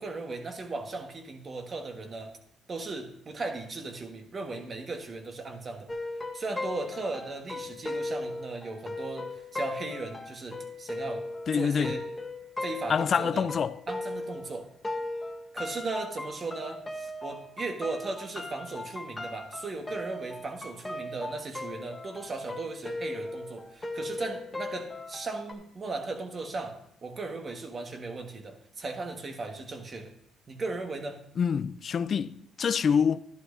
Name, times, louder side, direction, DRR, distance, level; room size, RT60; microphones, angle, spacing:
voice 1, 0.0-2.4 2.7-5.9 6.3-11.3 11.5-12.0 12.6-13.5 13.9-14.7 15.5-30.1 30.5-31.2, right 3 dB, 40° right, 1.4 m, -37 dB
sound 1, 5.9-14.6 14.8-25.5, left 2 dB, 20° left, 1.0 m, -37 dB
voice 2, 11.5-11.9 12.9-13.8 31.4-33.2, left 6 dB, 50° left, 0.3 m, -26 dB
11.5 x 11.0 x 2.6 m
cardioid pair, 90°, 0 cm